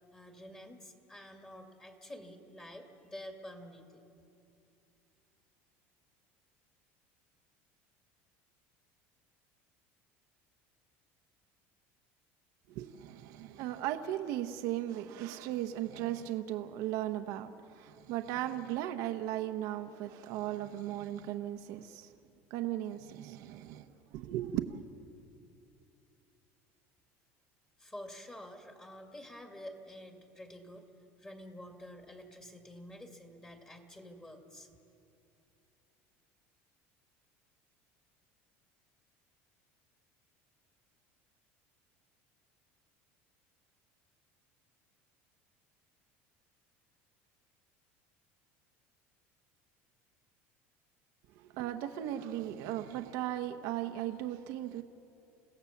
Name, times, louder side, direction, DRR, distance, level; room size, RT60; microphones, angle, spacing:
voice 1, 0.1-4.0 27.8-30.9 31.2-34.7, left 1 dB, 15° left, 2.3 m, -49 dB
voice 2, 12.7-22.1 22.5-23.9 24.1-24.8 51.4-54.8, right 12 dB, 65° right, 1.0 m, -37 dB
29.5 x 16.0 x 7.2 m
supercardioid pair, 125°, 6 cm